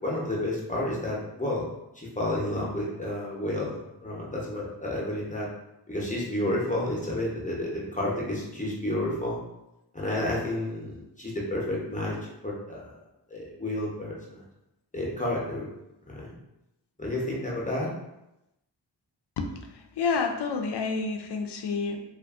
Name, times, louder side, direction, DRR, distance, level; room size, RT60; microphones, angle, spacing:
voice 1, 0.0-1.7 2.0-5.5 5.9-9.4 9.9-12.2 12.4-12.9 13.3-14.4 14.9-15.7 16.1-16.3 17.0-17.9, left 1 dB, 15° left, -4 dB, 0.8 m, -30 dB
voice 2, 19.4-22.0, left 4 dB, 65° left, 4 dB, 0.5 m, -29 dB
2.5 x 2.5 x 2.4 m, 0.90 s
cardioid pair, 50°, 45 cm